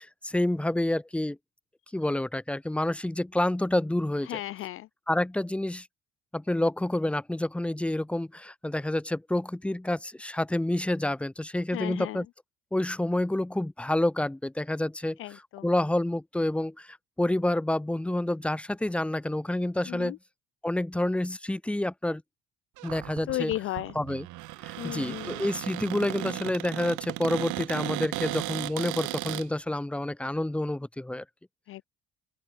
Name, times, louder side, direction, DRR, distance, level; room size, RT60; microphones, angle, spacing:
voice 1, 0.0-1.4 1.9-4.4 5.1-5.9 6.3-12.3 12.7-20.2 20.6-22.2 22.8-23.5 23.9-24.3 24.6-31.2, left 1 dB, 5° left, 1.5 m, -28 dB
voice 2, 4.3-4.9 11.7-12.2 15.2-15.6 19.9-20.2 23.3-23.9 24.8-25.4 31.7-31.8, left 16 dB, 45° left, 0.5 m, -34 dB
Cupboard open or close, 22.8-29.5, right 20 dB, 75° right, 3.0 m, -35 dB
open air
cardioid pair, 165°, 30 cm